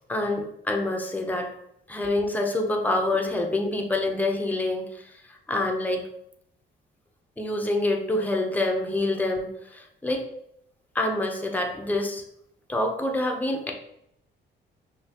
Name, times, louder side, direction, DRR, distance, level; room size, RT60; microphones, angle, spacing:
voice 1, 0.1-1.5 1.9-5.1 5.5-6.1 7.4-10.3 10.9-12.2 12.7-13.7, left 2 dB, 10° left, 2 dB, 0.8 m, -26 dB
5.5 x 2.8 x 2.9 m, 0.76 s
cardioid pair, 90°, 20 cm